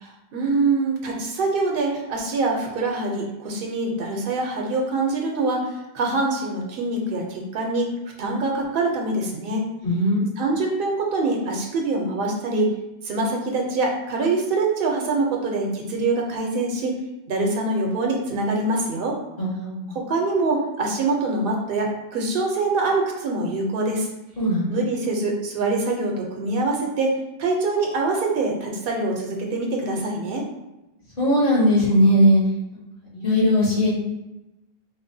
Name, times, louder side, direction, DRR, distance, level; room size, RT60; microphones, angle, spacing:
voice 1, 0.0-7.9 8.2-9.7 10.4-12.7 13.0-17.0 17.3-19.2 19.9-24.1 24.7-27.1 27.4-30.5, right 3 dB, 65° right, 1 dB, 0.8 m, -24 dB
voice 2, 9.8-10.2 19.4-20.0 24.4-24.7 31.2-32.4 33.1-33.9, equal, 60° left, -8 dB, 1.5 m, -19 dB
4.0 x 2.1 x 2.6 m, 0.95 s
omnidirectional pair, 1.0 m